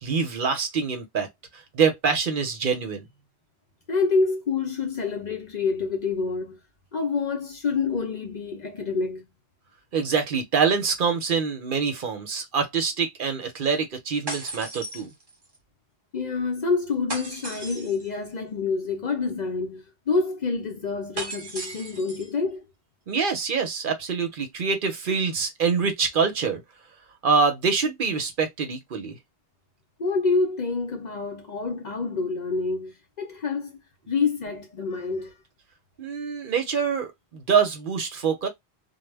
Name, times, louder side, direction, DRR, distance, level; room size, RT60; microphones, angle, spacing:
voice 1, 0.0-1.3 1.5-3.1 9.9-15.1 23.1-26.6 27.2-29.2 36.0-38.5, right 5 dB, 55° right, 0.8 m, -25 dB
voice 2, 3.9-6.6 6.9-9.3 16.1-22.6 30.0-33.7 34.1-35.4, left 4 dB, 55° left, 0.6 m, -27 dB
sound 1, 14.3-15.6 17.1-18.1 21.2-22.3, right 2 dB, 30° right, 0.6 m, -36 dB
2.2 x 2.0 x 3.2 m
omnidirectional pair, 1.1 m